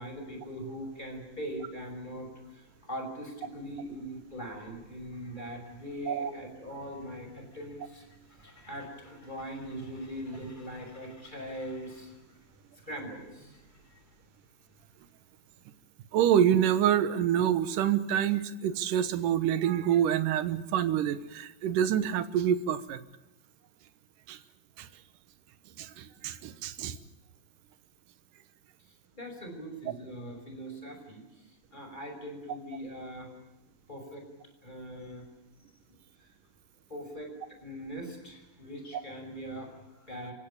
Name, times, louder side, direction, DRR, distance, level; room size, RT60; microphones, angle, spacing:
voice 1, 0.0-12.2 12.7-14.1 28.9-33.3 33.9-34.3 34.6-35.2 36.2-36.4 36.9-37.3 37.6-40.3, equal, 10° left, 5 dB, 5.9 m, -41 dB
voice 2, 16.1-23.0 24.3-24.4 24.8-24.9 25.8-27.0, right 10 dB, 75° right, 12 dB, 2.6 m, -27 dB
29.5 x 16.5 x 8.7 m, 1.1 s
omnidirectional pair, 4.1 m